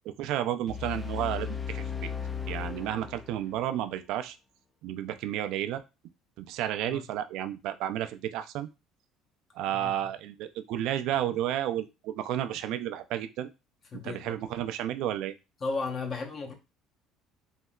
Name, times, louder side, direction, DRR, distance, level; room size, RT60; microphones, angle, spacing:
voice 1, 0.0-1.9 2.5-4.4 4.8-5.8 6.4-8.7 9.5-13.5 14.0-15.3, right 11 dB, 70° right, 0.3 m, -32 dB
sound 1, 0.7-3.7, left 7 dB, 20° left, 0.4 m, -36 dB
voice 2, 13.9-14.3 15.6-16.5, left 4 dB, 40° left, 0.9 m, -34 dB
3.2 x 2.7 x 2.2 m
supercardioid pair, 80°, 0 cm